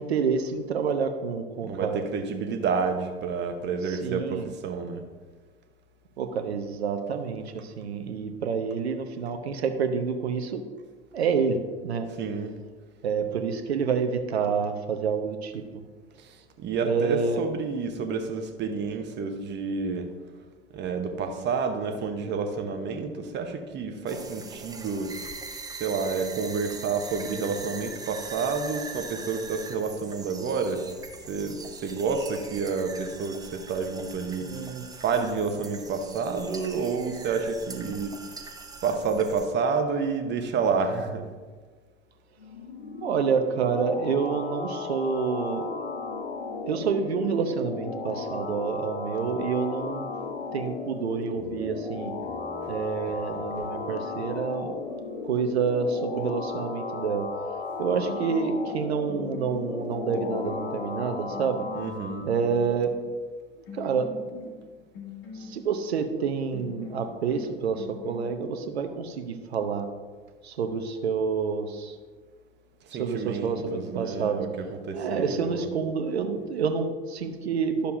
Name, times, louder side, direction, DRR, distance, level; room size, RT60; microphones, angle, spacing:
voice 1, 0.0-2.0 3.9-4.5 6.2-10.6 11.1-12.1 13.0-15.6 16.8-17.4 34.4-34.9 43.0-45.9 46.6-50.0 50.5-52.1 52.7-57.3 57.8-61.7 62.3-62.9 63.7-64.6 65.3-69.9 70.4-72.0 72.9-74.4 74.9-77.9, right 6 dB, 75° right, 7 dB, 0.8 m, -28 dB
voice 2, 1.6-5.1 12.1-12.5 16.2-20.1 20.7-25.3 25.8-30.8 31.3-34.5 35.0-38.1 38.8-41.3 61.7-62.2 72.9-75.7, right 5 dB, 35° right, 6 dB, 1.0 m, -29 dB
sound 1, 24.1-39.5, right 3 dB, 10° right, 0.8 m, -42 dB
sound 2, 42.4-62.3, left 4 dB, 80° left, 0.9 m, -35 dB
sound 3, 51.3-54.0 57.5-57.7 58.0-63.1 63.7-65.9 66.5-68.3, left 7 dB, 50° left, 2.0 m, -44 dB
11.5 x 6.8 x 2.6 m, 1.4 s
figure-of-eight pair, 75°, 32 cm